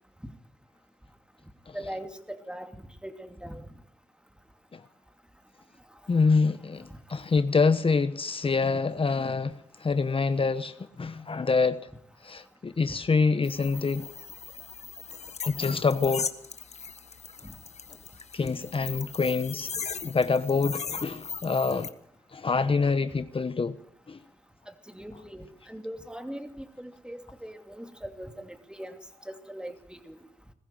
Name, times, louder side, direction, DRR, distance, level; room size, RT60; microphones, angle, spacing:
voice 1, 1.7-3.7 17.4-17.6 24.7-29.0 29.3-30.2, equal, 5° right, 2.8 m, -41 dB
voice 2, 6.1-11.8 12.2-14.1 15.5-16.3 18.3-19.7 20.0-21.9 22.3-23.8 24.1-24.2, left 4 dB, 45° left, 1.1 m, -26 dB
sound 1, 13.4-21.9, left 6 dB, 65° left, 1.5 m, -38 dB
21.0 x 15.0 x 9.1 m
cardioid pair, 60°, 12 cm